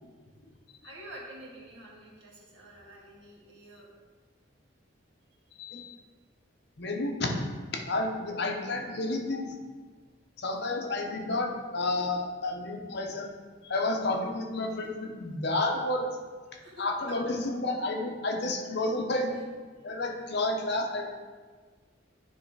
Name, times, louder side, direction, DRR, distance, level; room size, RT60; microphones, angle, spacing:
voice 1, 0.8-3.9 16.6-16.8 17.3-17.4, right 1 dB, 75° right, -4 dB, 1.9 m, -48 dB
voice 2, 5.6-5.9 6.8-7.4 7.7-9.5 10.4-13.3 13.6-16.0 16.8-19.4 19.8-21.1, left 2 dB, 60° left, 2 dB, 0.9 m, -30 dB
9.8 x 3.3 x 4.7 m, 1.5 s
head